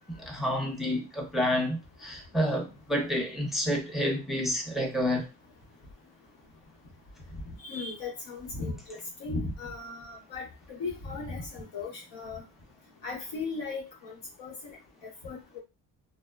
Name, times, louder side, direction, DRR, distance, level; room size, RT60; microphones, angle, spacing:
voice 1, 0.1-5.3, equal, ahead, 0.6 m, -29 dB
voice 2, 7.5-12.4 13.0-14.8 15.2-15.6, left 3 dB, 75° left, 1.1 m, -37 dB
2.6 x 2.1 x 2.3 m
cardioid pair, 75°, 43 cm